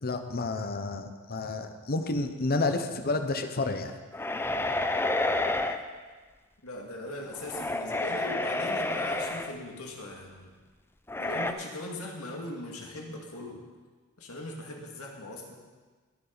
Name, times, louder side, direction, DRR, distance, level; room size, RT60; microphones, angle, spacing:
voice 1, 0.0-3.9, left 3 dB, 45° left, 7 dB, 0.9 m, -30 dB
sound 1, 4.1-5.8 7.3-9.5 11.1-11.5, left 2 dB, 10° left, 0.5 m, -29 dB
voice 2, 6.6-10.5 11.2-13.6 14.2-15.5, left 1 dB, 75° left, 0 dB, 2.2 m, -39 dB
21.0 x 7.4 x 4.1 m, 1.4 s
head